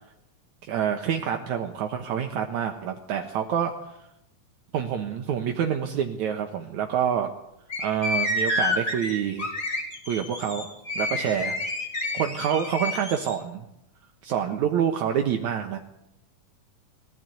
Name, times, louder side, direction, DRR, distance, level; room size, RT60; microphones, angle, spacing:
voice 1, 0.6-4.0 4.7-7.3 7.8-9.5 10.1-10.7 11.0-11.5 12.1-13.7 14.2-15.8, right 8 dB, 70° right, 4 dB, 2.5 m, -27 dB
sound 1, 7.7-13.3, left 2 dB, 30° left, 4.5 m, -29 dB
22.5 x 16.0 x 9.3 m, 0.84 s
omnidirectional pair, 3.7 m